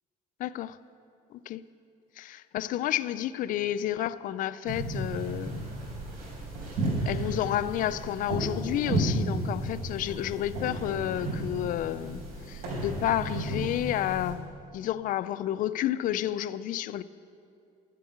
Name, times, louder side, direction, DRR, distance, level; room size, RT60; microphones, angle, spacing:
voice 1, 0.4-0.8 1.3-1.6 2.2-5.7 7.1-12.2 12.5-17.0, left 12 dB, 60° left, 14 dB, 0.5 m, -31 dB
sound 1, 4.7-14.3, right 1 dB, 75° right, 4.0 m, -33 dB
12.5 x 7.7 x 9.2 m, 2.6 s
cardioid pair, 125°, 15 cm